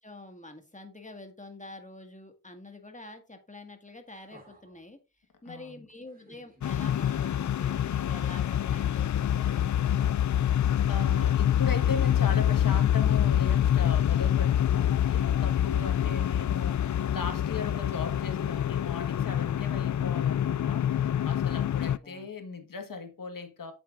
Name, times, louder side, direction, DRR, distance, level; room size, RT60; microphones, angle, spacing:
voice 1, 0.0-5.0 5.4-9.7 21.7-22.3, left 2 dB, 25° left, 1.9 m, -47 dB
sound 1, 4.1-4.9 6.1-7.0 8.1-8.7 9.8-11.0 12.0-12.1, right 1 dB, 25° right, 3.5 m, -57 dB
voice 2, 5.4-5.8 10.5-23.7, left 4 dB, 85° left, 1.7 m, -38 dB
sound 2, 6.6-22.0, left 10 dB, 60° left, 0.5 m, -26 dB
8.5 x 8.0 x 2.5 m
cardioid pair, 55°, 32 cm